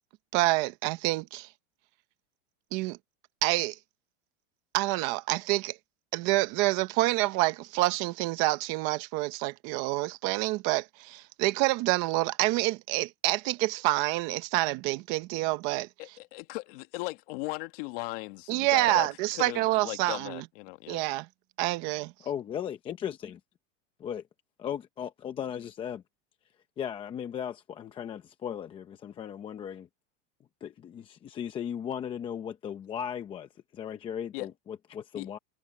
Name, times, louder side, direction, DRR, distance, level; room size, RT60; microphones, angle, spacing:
voice 1, 0.3-1.5 2.7-3.0 3.4-3.8 4.7-5.8 6.1-15.9 18.5-20.4 20.9-21.3 21.6-22.1, right 19 dB, 35° right, 0.7 m, -27 dB
voice 2, 16.0-21.0 34.3-34.5 35.2-35.3, left 22 dB, 45° left, 1.5 m, -38 dB
voice 3, 22.2-23.4 24.0-24.2 24.6-26.0 26.8-29.9 30.6-35.4, left 9 dB, 15° left, 0.6 m, -37 dB
supercardioid pair, 170°, 37 cm